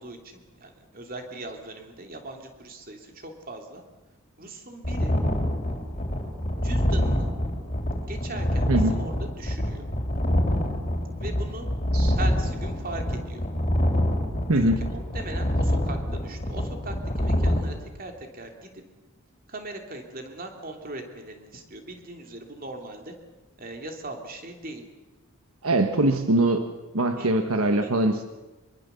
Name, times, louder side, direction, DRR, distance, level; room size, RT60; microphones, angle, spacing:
voice 1, 0.0-3.8 4.4-5.1 6.6-7.3 8.0-9.8 11.2-11.7 12.1-13.4 14.5-18.8 19.5-23.1 23.6-24.9 27.2-27.5 27.8-28.1, right 2 dB, 40° right, 3 dB, 3.0 m, -39 dB
sound 1, 4.8-17.6, equal, 30° left, 3.6 m, -26 dB
voice 2, 25.6-26.7 26.9-28.2, right 1 dB, 75° right, 7 dB, 1.3 m, -22 dB
24.5 x 23.0 x 7.0 m, 1.1 s
head